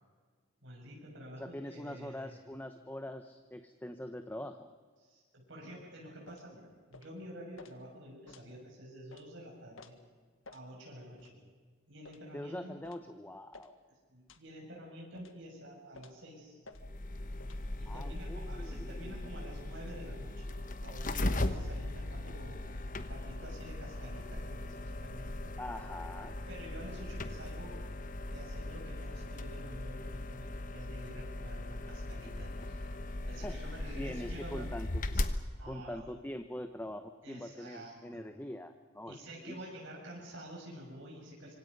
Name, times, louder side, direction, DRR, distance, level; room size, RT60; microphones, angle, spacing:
voice 1, 0.6-2.4 5.0-9.9 10.5-11.4 11.9-12.8 14.1-16.6 17.8-20.6 20.8-22.7 23.1-25.5 26.5-27.8 28.3-32.9 33.2-34.9 35.1-35.3 35.6-36.2 37.2-38.3 39.1-41.5, equal, 65° right, -2 dB, 6.5 m, -49 dB
voice 2, 1.4-4.7 12.3-13.7 17.9-19.5 25.6-26.4 33.4-33.6 33.9-35.0 35.6-39.6, left 1 dB, 10° left, 8 dB, 0.9 m, -43 dB
sound 1, 6.3-6.5 6.9-7.1 7.6-7.7 8.3-8.5 9.1-9.3 9.8-9.9 10.4-10.7 11.2-11.3 12.0-12.3 12.8-13.1 13.5-13.7 14.3-14.5 15.1-15.4 15.9-16.2 16.6-16.8 17.4-17.6, left 4 dB, 80° left, 1.7 m, -54 dB
sound 2, 16.7-35.4, left 1 dB, 40° left, 1.2 m, -38 dB
26.0 x 25.5 x 5.4 m, 1.5 s
head